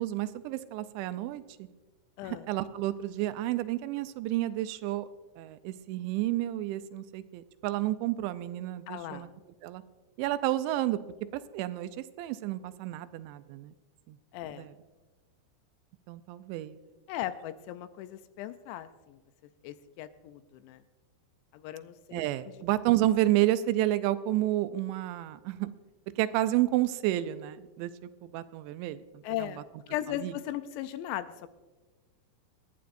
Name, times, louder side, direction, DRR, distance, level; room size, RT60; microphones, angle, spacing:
voice 1, 0.0-1.7 2.2-5.1 5.4-9.3 9.6-9.8 10.2-11.0 11.5-11.9 12.2-13.7 14.1-14.2 14.6-14.7 16.1-16.8 22.1-25.7 26.2-27.9 28.2-29.5 30.2-30.3, right 15 dB, 85° right, 12 dB, 2.8 m, -30 dB
voice 2, 2.2-2.5 8.9-9.3 14.3-14.7 17.1-19.2 19.6-20.8 21.5-22.6 29.2-29.6 29.9-31.5, left 13 dB, 85° left, 11 dB, 2.7 m, -38 dB
26.5 x 9.4 x 2.6 m, 1.2 s
omnidirectional pair, 5.2 m